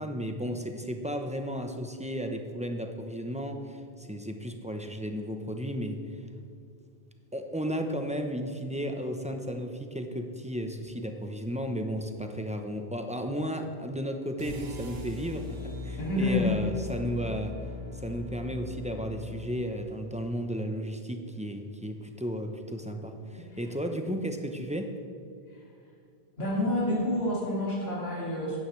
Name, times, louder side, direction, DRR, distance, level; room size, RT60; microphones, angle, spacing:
voice 1, 0.0-6.0 7.3-17.5 17.9-24.9, equal, 10° right, 5 dB, 0.6 m, -34 dB
sound 1, 14.4-20.5, left 3 dB, 70° right, 1.4 m, -40 dB
voice 2, 16.0-16.5 23.5-23.6 25.5-25.6 26.4-28.6, left 1 dB, 70° left, -5 dB, 2.4 m, -28 dB
14.5 x 10.0 x 3.2 m, 2.4 s
omnidirectional pair, 1.1 m